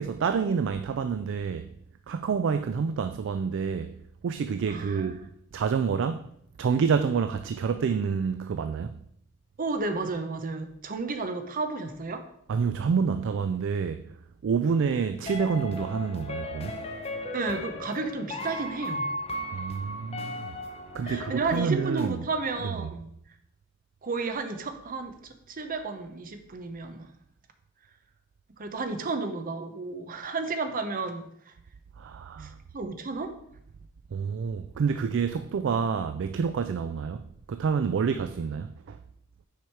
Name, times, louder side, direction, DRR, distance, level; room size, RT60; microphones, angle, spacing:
voice 1, 0.0-1.7 2.1-3.9 4.2-5.2 5.5-6.3 6.6-9.0 12.5-14.1 14.4-16.8 19.5-20.5 20.9-22.2 22.6-22.9 32.0-32.6 34.1-39.0, right 6 dB, 60° right, 0.3 m, -28 dB
voice 2, 4.7-5.1 9.6-12.2 17.3-19.1 21.0-23.1 24.0-25.2 25.5-27.1 28.6-31.5 32.4-33.3, right 3 dB, 40° right, 0.7 m, -32 dB
sound 1, 15.3-22.1, left 1 dB, 30° left, 0.8 m, -36 dB
6.3 x 4.9 x 4.5 m
head